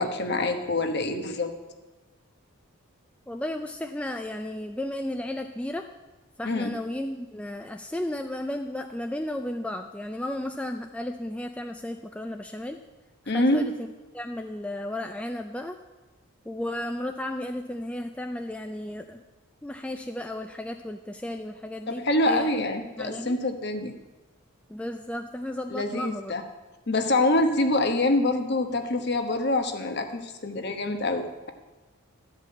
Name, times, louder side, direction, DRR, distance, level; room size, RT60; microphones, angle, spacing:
voice 1, 0.0-1.5 6.4-6.7 13.3-13.7 21.9-23.9 25.7-26.4 26.9-31.5, left 2 dB, 50° left, 6 dB, 1.1 m, -25 dB
voice 2, 3.3-5.9 6.4-12.8 13.2-13.7 14.1-15.8 16.5-19.2 19.6-22.5 23.0-23.4 24.7-26.3, left 1 dB, 5° left, 5 dB, 0.3 m, -34 dB
12.5 x 5.3 x 8.4 m, 1.1 s
head